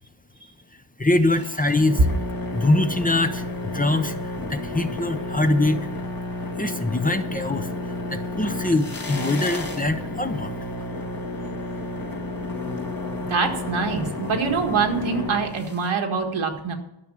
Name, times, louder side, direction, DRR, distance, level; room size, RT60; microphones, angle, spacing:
voice 1, 0.7-2.1 2.5-5.9 6.6-7.7 8.1-10.5, left 2 dB, 20° left, 8 dB, 0.7 m, -23 dB
sound 1, 1.3-15.9, left 2 dB, 45° left, 1.9 m, -31 dB
voice 2, 13.3-16.7, right 5 dB, 85° right, 3 dB, 1.8 m, -24 dB
12.5 x 6.1 x 8.5 m, 0.88 s
wide cardioid pair, 100°, 47 cm